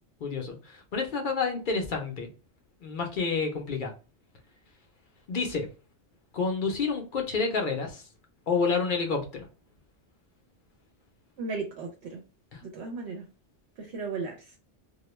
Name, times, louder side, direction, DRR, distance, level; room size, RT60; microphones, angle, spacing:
voice 1, 0.2-2.3 2.8-3.9 5.3-5.7 6.3-8.0 8.5-9.5 12.5-12.6, left 4 dB, 55° left, 3 dB, 0.7 m, -29 dB
voice 2, 11.4-12.2 12.6-13.2 13.8-14.5, right 4 dB, 70° right, 2 dB, 0.8 m, -35 dB
2.3 x 2.1 x 3.0 m, 0.32 s
omnidirectional pair, 1.2 m